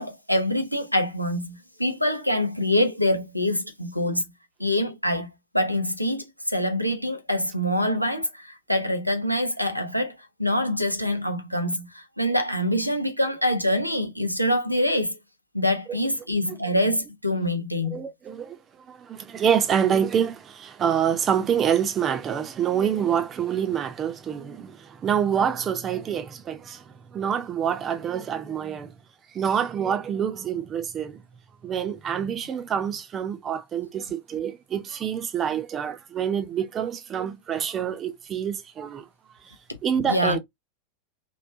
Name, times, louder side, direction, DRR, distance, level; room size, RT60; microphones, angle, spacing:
voice 1, 0.0-4.3 4.6-5.3 5.5-15.1 15.5-18.0 40.0-40.4, left 1 dB, 90° left, 0.6 m, -25 dB
voice 2, 17.9-28.9 29.3-31.2 31.6-39.1 39.4-39.5 39.8-40.4, right 8 dB, 25° right, 0.5 m, -26 dB
3.2 x 2.1 x 2.6 m
figure-of-eight pair, 90°, 0 cm